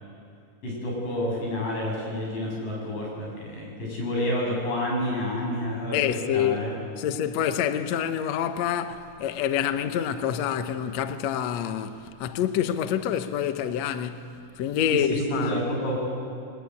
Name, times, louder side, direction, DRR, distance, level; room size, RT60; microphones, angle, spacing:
voice 1, 0.6-6.0 6.3-6.7 14.9-16.0, equal, 55° left, 9.1 m, -29 dB
voice 2, 5.9-6.6 7.0-15.6, left 9 dB, 85° left, 1.5 m, -27 dB
23.0 x 22.0 x 9.6 m
omnidirectional pair, 4.6 m